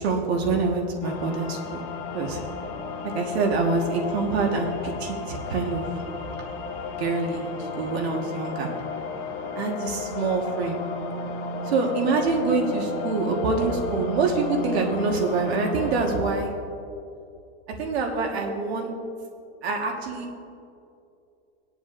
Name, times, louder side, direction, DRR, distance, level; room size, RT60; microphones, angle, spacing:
voice 1, 0.0-1.8 2.1-2.4 3.1-5.9 7.0-8.7 9.5-10.8 11.7-16.5 17.8-18.9 19.6-20.4, right 3 dB, 65° right, 1 dB, 1.5 m, -25 dB
sound 1, 1.0-16.2, left 3 dB, 20° left, 0.6 m, -33 dB
17.5 x 10.5 x 2.5 m, 2.6 s
supercardioid pair, 180°, 34 cm